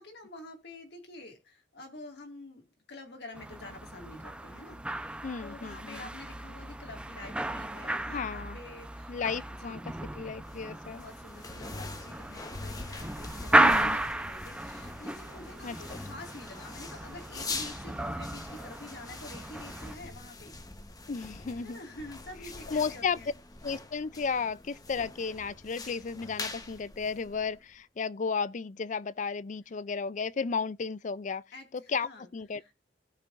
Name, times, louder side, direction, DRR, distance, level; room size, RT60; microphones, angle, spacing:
voice 1, 0.0-2.6 2.9-4.8 5.1-9.8 10.7-20.5 21.6-23.3 31.5-32.3 32.5-32.7, left 2 dB, 65° left, 2.2 m, -48 dB
sound 1, 3.3-19.9, right 1 dB, 5° right, 0.7 m, -33 dB
voice 2, 5.2-6.0 8.1-8.6 9.1-9.8 10.2-11.0 13.6-14.0 15.6-15.8 21.1-21.8 22.7-23.2 23.6-31.4 31.9-32.6, left 5 dB, 45° left, 0.4 m, -33 dB
sound 2, 10.0-27.8, left 3 dB, 20° left, 1.1 m, -44 dB
17.0 x 6.0 x 2.6 m
head